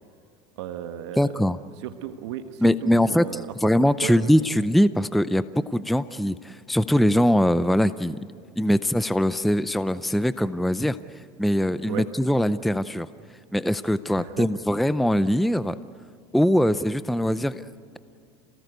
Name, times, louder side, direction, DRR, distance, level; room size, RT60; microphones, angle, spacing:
voice 1, 0.6-1.2 1.8-3.5 4.0-4.3 11.9-12.0 14.2-14.5, right 12 dB, 80° right, 7 dB, 1.3 m, -35 dB
voice 2, 1.2-1.6 2.6-8.2 8.6-11.0 11.4-13.1 13.5-15.8 16.3-17.7, equal, ahead, 14 dB, 0.5 m, -22 dB
28.5 x 18.0 x 8.1 m, 2.4 s
supercardioid pair, 110°, 14 cm